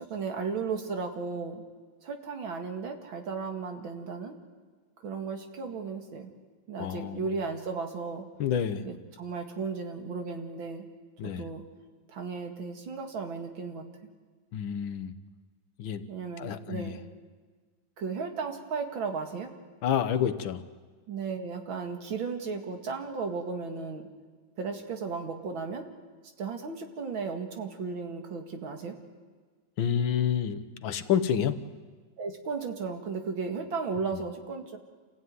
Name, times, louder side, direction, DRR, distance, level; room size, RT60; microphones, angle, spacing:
voice 1, 0.0-1.6 2.0-4.4 5.0-6.3 6.7-8.2 8.8-10.9 11.2-11.6 12.1-13.8 16.1-17.0 18.0-19.5 21.1-24.1 24.6-25.9 26.4-28.9 32.2-34.8, right 5 dB, 85° right, 4 dB, 2.8 m, -35 dB
voice 2, 6.8-7.3 8.4-8.9 11.2-11.4 14.5-15.1 15.8-16.0 16.4-17.0 19.8-20.6 29.8-31.6, left 8 dB, 80° left, 11 dB, 1.8 m, -28 dB
28.0 x 15.5 x 9.5 m, 1.5 s
omnidirectional pair, 2.1 m